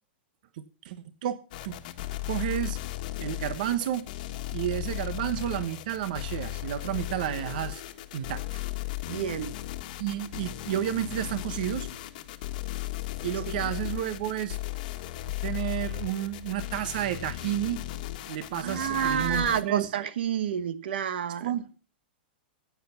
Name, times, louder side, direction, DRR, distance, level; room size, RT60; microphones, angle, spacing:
voice 1, 0.6-1.8 2.3-2.8 3.2-4.0 4.5-7.8 8.1-8.6 10.0-11.9 13.2-14.6 15.4-17.8 18.3-19.9 21.4-21.7, right 11 dB, 55° right, 1.2 m, -31 dB
sound 1, 1.5-19.6, left 16 dB, 50° left, 1.4 m, -36 dB
voice 2, 9.1-9.6 13.5-13.7 18.6-21.5, right 9 dB, 75° right, 1.3 m, -29 dB
15.5 x 8.5 x 5.7 m
supercardioid pair, 165°, 6 cm